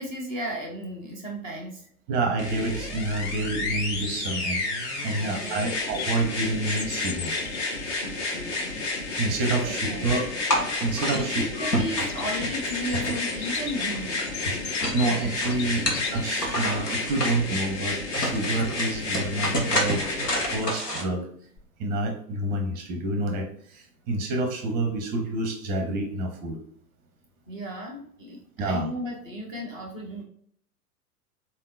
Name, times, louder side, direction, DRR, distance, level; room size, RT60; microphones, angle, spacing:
voice 1, 0.0-1.9 5.1-5.7 7.6-8.8 9.6-10.1 11.1-15.5 16.3-16.6 27.5-30.2, equal, 15° left, -6 dB, 0.3 m, -36 dB
voice 2, 2.1-7.3 9.2-10.2 10.8-11.7 14.9-15.8 16.1-20.0 20.5-21.3 21.8-26.6 28.6-28.9, right 2 dB, 20° right, 4 dB, 0.6 m, -28 dB
sound 1, 2.4-20.6 21.6-21.7, left 2 dB, 50° left, 1.6 m, -31 dB
Bird vocalization bird call bird song, 4.5-17.2, left 8 dB, 65° left, 0.6 m, -42 dB
sound 2, 10.5-11.2 11.7-13.5 13.8-15.0 15.4-17.3 17.8-17.9 18.1-21.0, equal, 85° left, 1.3 m, -29 dB
4.2 x 3.6 x 2.4 m, 0.64 s
figure-of-eight pair, 105°, 47 cm